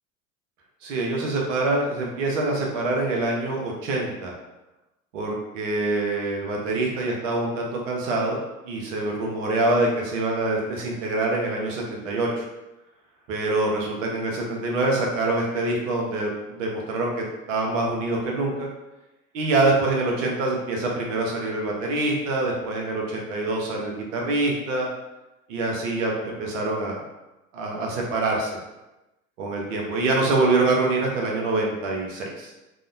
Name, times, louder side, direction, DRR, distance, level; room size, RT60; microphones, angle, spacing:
voice 1, 0.8-4.3 5.1-12.4 13.3-18.7 19.3-24.9 25.5-27.0 27.5-28.6 29.4-32.5, right 2 dB, 70° right, -1 dB, 0.6 m, -25 dB
2.7 x 2.0 x 2.5 m, 1.0 s
figure-of-eight pair, 70°, 39 cm